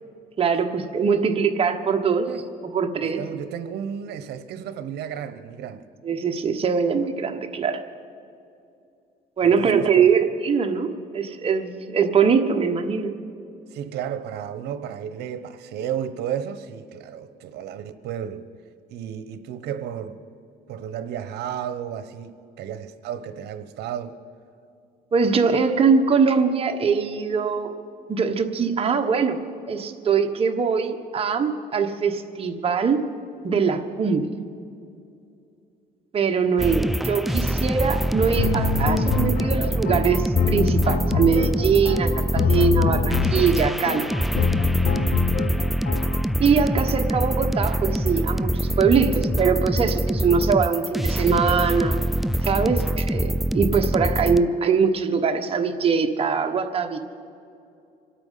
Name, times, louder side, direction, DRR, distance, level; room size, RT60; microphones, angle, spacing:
voice 1, 0.4-2.3 2.7-3.2 6.0-7.8 9.4-13.1 25.1-27.7 28.1-29.4 29.7-33.0 33.4-34.3 36.1-44.1 46.4-52.0 52.4-53.3 53.5-57.0, right 6 dB, 35° right, 1.2 m, -22 dB
voice 2, 3.0-5.8 9.4-10.1 13.7-18.5 18.9-20.2 20.7-24.2 42.4-42.7 44.8-45.1, right 9 dB, 75° right, 1.0 m, -33 dB
sound 1, 36.6-54.4, right 1 dB, ahead, 0.3 m, -24 dB
sound 2, 38.4-46.3, left 6 dB, 60° left, 1.1 m, -25 dB
26.0 x 8.9 x 5.7 m
cardioid pair, 110°, 17 cm